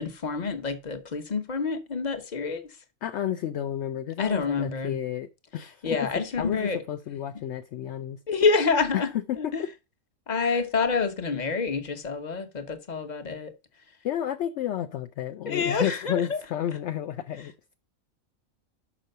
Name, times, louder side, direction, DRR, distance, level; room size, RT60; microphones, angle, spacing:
voice 1, 0.0-2.6 4.2-5.0 5.8-6.8 8.3-9.1 9.4-9.6 10.3-13.5 15.5-16.4, left 4 dB, 35° left, 1.0 m, -27 dB
voice 2, 3.0-6.1 6.4-8.2 8.9-9.7 10.4-10.6 14.0-17.5, left 10 dB, 65° left, 0.8 m, -31 dB
6.1 x 5.6 x 6.6 m
omnidirectional pair, 1.5 m